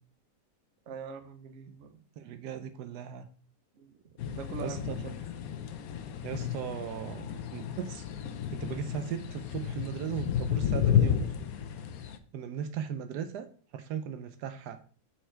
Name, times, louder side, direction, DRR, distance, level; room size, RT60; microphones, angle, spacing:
voice 1, 0.9-2.0 3.8-3.9 4.3-5.1, right 5 dB, 50° right, 8 dB, 1.0 m, -42 dB
voice 2, 2.2-3.3 4.6-5.0 6.2-8.0 8.5-11.3 12.3-13.5 13.7-14.8, right 8 dB, 80° right, 10 dB, 1.2 m, -37 dB
sound 1, 4.2-12.2, left 9 dB, 65° left, 1.0 m, -32 dB
6.7 x 4.6 x 4.4 m, 0.43 s
omnidirectional pair, 1.8 m